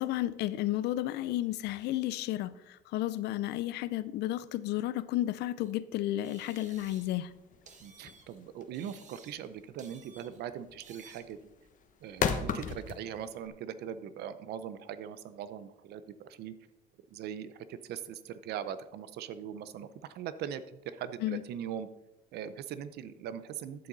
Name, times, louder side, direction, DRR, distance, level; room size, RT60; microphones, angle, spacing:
voice 1, 0.0-7.3 21.2-21.4, left 14 dB, 80° left, 16 dB, 0.6 m, -32 dB
sound 1, 5.6-5.7 6.2-7.3 7.7-8.4 8.7-9.5 9.8-10.4 10.8-11.4, right 5 dB, 45° right, 1.5 m, -56 dB
sound 2, 6.7-13.5, left 7 dB, 50° left, 1.0 m, -36 dB
voice 2, 7.8-11.5 12.0-16.5 17.1-19.9 20.1-21.9 22.3-23.9, right 9 dB, 75° right, 13 dB, 0.7 m, -41 dB
12.5 x 7.8 x 4.0 m, 0.94 s
cardioid pair, 110°, 17 cm